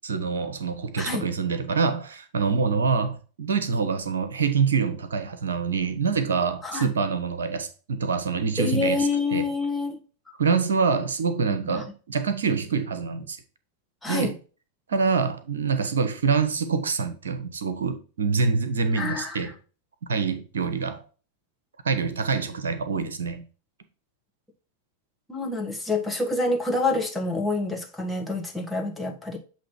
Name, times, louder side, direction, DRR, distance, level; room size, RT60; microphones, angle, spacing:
voice 1, 0.0-9.4 10.4-13.4 14.1-14.3 14.9-19.5 20.1-21.0 21.8-23.5, right 5 dB, 65° right, 0.8 m, -25 dB
voice 2, 8.6-10.0 11.6-11.8 14.0-14.3 19.0-19.5 25.3-29.4, left 3 dB, 5° left, 1.3 m, -27 dB
7.4 x 2.9 x 4.5 m
figure-of-eight pair, 90°, 0 cm